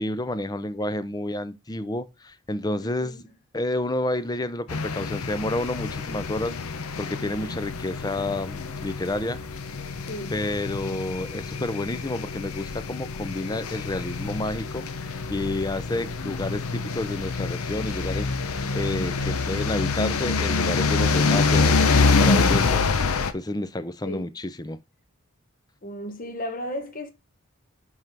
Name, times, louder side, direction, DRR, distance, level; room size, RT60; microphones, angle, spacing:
voice 1, 0.0-3.2 3.5-6.5 7.0-9.4 10.3-14.9 15.3-22.9 23.3-24.8, left 1 dB, 20° left, 0.5 m, -30 dB
voice 2, 2.8-3.3 10.0-10.4 24.0-24.3 25.8-27.1, left 1 dB, 40° left, 1.2 m, -35 dB
sound 1, 4.7-23.3, left 4 dB, 80° left, 0.8 m, -26 dB
6.0 x 5.5 x 4.6 m
head